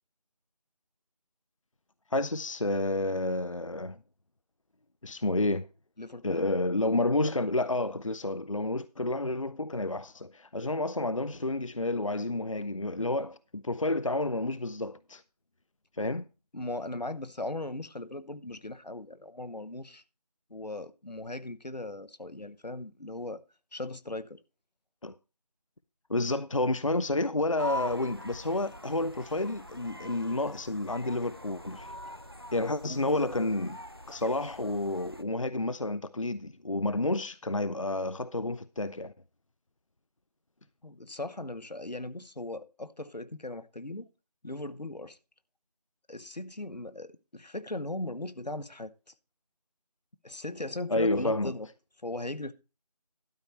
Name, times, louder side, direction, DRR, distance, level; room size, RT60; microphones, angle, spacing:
voice 1, 2.1-4.0 5.0-5.7 6.2-15.2 16.0-16.2 25.0-25.1 26.1-31.9 32.5-33.8 34.1-39.1 50.9-51.5, left 2 dB, 55° left, 0.4 m, -30 dB
voice 2, 6.0-6.5 16.5-20.0 20.5-23.4 23.7-24.4 32.8-33.0 40.8-44.1 44.4-45.2 46.1-48.9 50.2-51.7 52.0-52.5, left 2 dB, 90° left, 1.0 m, -38 dB
sound 1, 27.6-35.2, left 1 dB, 35° right, 0.5 m, -43 dB
12.5 x 4.5 x 6.5 m
figure-of-eight pair, 175°, 21 cm